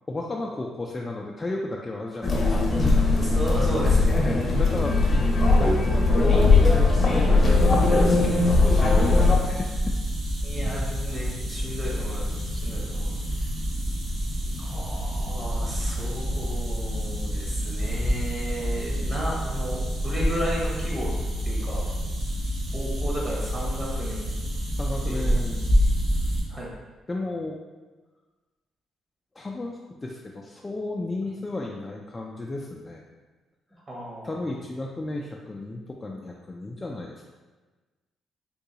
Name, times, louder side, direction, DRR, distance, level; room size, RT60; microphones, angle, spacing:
voice 1, 0.1-3.7 4.3-9.9 24.7-25.7 27.1-27.6 29.4-33.0 34.2-37.3, left 2 dB, 20° left, -2 dB, 0.3 m, -34 dB
sound 1, 2.2-9.4, left 3 dB, 40° left, 0.7 m, -19 dB
voice 2, 3.0-4.3 10.4-13.2 14.6-21.1 21.4-21.8 22.7-24.3 25.1-25.3 26.5-26.7 33.9-34.4, equal, 30° right, -4 dB, 0.9 m, -34 dB
sound 2, 7.5-26.4, equal, 70° right, 1.2 m, -27 dB
3.8 x 2.3 x 2.8 m, 1.3 s
cardioid pair, 90°, 0 cm